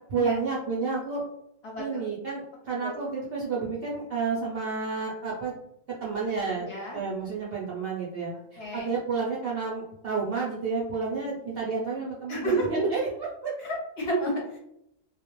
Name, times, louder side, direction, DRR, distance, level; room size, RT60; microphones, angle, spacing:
voice 1, 0.1-1.2 1.8-5.5 6.0-6.7 6.9-13.5, right 4 dB, 65° right, -5 dB, 0.6 m, -30 dB
voice 2, 1.6-2.0 2.8-2.9 6.6-7.0 8.6-8.9 12.3-12.7 13.6-14.6, right 1 dB, 60° left, -2 dB, 0.8 m, -31 dB
2.3 x 2.1 x 2.9 m, 0.78 s
omnidirectional pair, 1.4 m